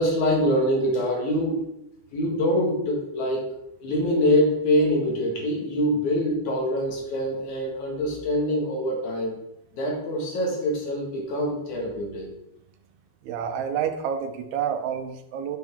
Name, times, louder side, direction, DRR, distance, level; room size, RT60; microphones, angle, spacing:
voice 1, 0.0-1.7 2.1-3.5 3.8-9.4 9.8-12.3, equal, 80° left, -1 dB, 3.2 m, -24 dB
voice 2, 13.2-15.6, right 8 dB, 80° right, 5 dB, 2.2 m, -29 dB
10.0 x 7.0 x 3.6 m, 0.83 s
omnidirectional pair, 3.4 m